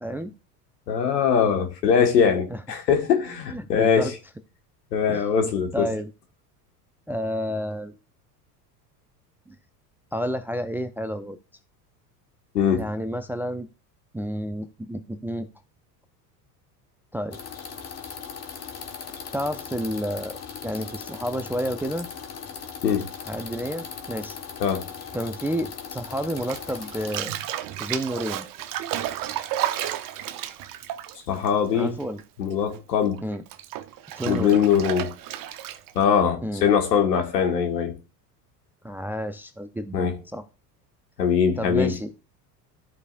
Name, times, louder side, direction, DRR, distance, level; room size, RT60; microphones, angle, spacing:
voice 1, 0.0-0.3 2.5-2.6 3.5-4.1 5.1-5.2 5.7-6.1 7.1-7.9 9.5-9.6 10.1-11.4 12.7-13.7 14.1-15.5 17.1-17.4 19.3-22.1 23.3-24.4 25.1-27.3 27.8-28.5 31.7-32.2 33.2-33.4 34.2-34.7 36.4-36.7 38.8-40.4 41.6-42.1, equal, 5° right, 0.4 m, -30 dB
voice 2, 0.9-4.1 4.9-5.9 12.5-12.9 22.8-23.1 24.6-24.8 31.3-32.0 32.4-33.2 34.3-35.1 35.9-37.9 39.9-40.2 41.2-42.0, left 7 dB, 85° left, 1.6 m, -22 dB
sound 1, 17.3-27.2, left 6 dB, 30° left, 1.4 m, -38 dB
Bathtub (filling or washing), 26.4-32.2 32.5-36.0, right 12 dB, 45° right, 0.8 m, -32 dB
13.0 x 4.8 x 2.5 m
hypercardioid pair, 80°, 48 cm